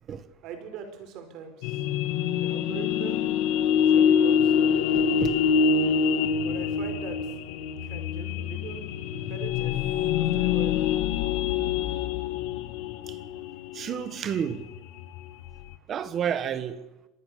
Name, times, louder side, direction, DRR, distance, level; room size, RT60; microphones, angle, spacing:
voice 1, 0.4-1.8 2.3-3.3 3.6-5.0 6.4-7.2 7.6-10.8, right 8 dB, 40° right, 4.6 m, -42 dB
sound 1, 1.6-15.8, left 7 dB, 55° left, 1.9 m, -25 dB
voice 2, 4.9-5.4 13.1-13.2 13.7-14.7 15.9-16.8, right 8 dB, 25° right, 1.4 m, -30 dB
26.0 x 19.5 x 6.7 m
cardioid pair, 175°, 0 cm